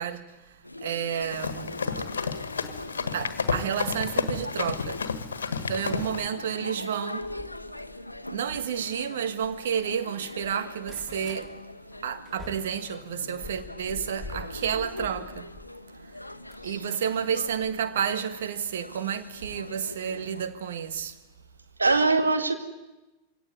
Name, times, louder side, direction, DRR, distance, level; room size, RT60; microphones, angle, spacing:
voice 1, 0.0-1.8 3.1-5.1 5.6-7.3 8.3-11.5 12.0-15.5 15.9-16.3 16.6-21.2, right 8 dB, 60° right, 1.6 m, -31 dB
sound 1, 0.6-20.5, left 1 dB, 85° left, 0.9 m, -41 dB
Run, 1.2-6.3, left 5 dB, 70° left, 1.5 m, -31 dB
sound 2, 7.2-10.0 10.3-11.5 11.9-15.7 16.1-18.3 19.3-19.5 20.0-20.1 20.3-20.4, left 2 dB, 5° right, 4.1 m, -46 dB
voice 2, 16.5-16.9 21.8-22.5, right 3 dB, 80° right, 2.1 m, -23 dB
23.5 x 17.5 x 9.6 m
figure-of-eight pair, 90°, 0 cm